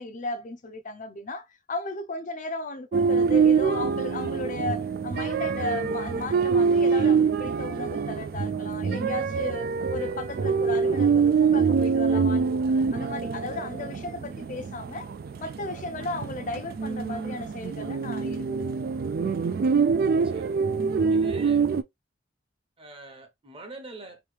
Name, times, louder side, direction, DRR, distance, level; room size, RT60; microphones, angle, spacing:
voice 1, 0.0-15.1 15.4-18.7, left 2 dB, 45° left, 0.5 m, -35 dB
sound 1, 2.9-21.8, right 5 dB, 55° right, 0.3 m, -25 dB
voice 2, 20.2-20.6 21.1-21.6 22.8-24.2, right 2 dB, 30° right, 0.9 m, -44 dB
3.0 x 2.7 x 3.2 m
head